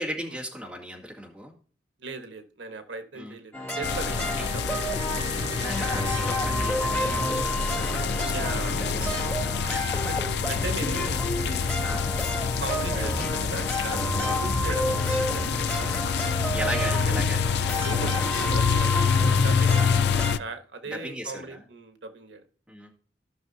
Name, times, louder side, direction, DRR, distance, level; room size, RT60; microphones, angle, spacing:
voice 1, 0.0-1.5 3.1-3.4 5.5-9.6 11.8-12.0 14.2-14.4 16.5-17.4 19.7-19.9 20.8-21.6 22.7-22.9, equal, 5° right, -3 dB, 2.3 m, -37 dB
voice 2, 2.0-4.6 6.4-6.5 8.3-8.7 9.4-11.7 12.4-15.6 16.9-17.2 17.8-18.9 19.4-20.0 20.4-22.4, right 3 dB, 85° right, 8 dB, 1.2 m, -38 dB
sound 1, 3.5-20.3, equal, 15° left, 3.2 m, -30 dB
sound 2, 3.8-20.4, left 6 dB, 65° left, 0.4 m, -27 dB
15.0 x 6.2 x 2.7 m, 0.43 s
head